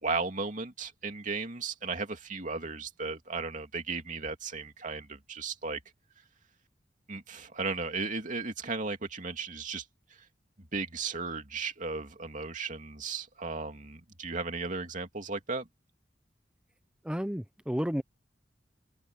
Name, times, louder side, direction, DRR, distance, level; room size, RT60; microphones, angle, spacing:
voice 1, 0.0-5.8 7.1-9.8 10.7-15.7, right 4 dB, 45° right, 2.8 m, -35 dB
voice 2, 17.0-18.0, equal, 5° right, 1.0 m, -31 dB
head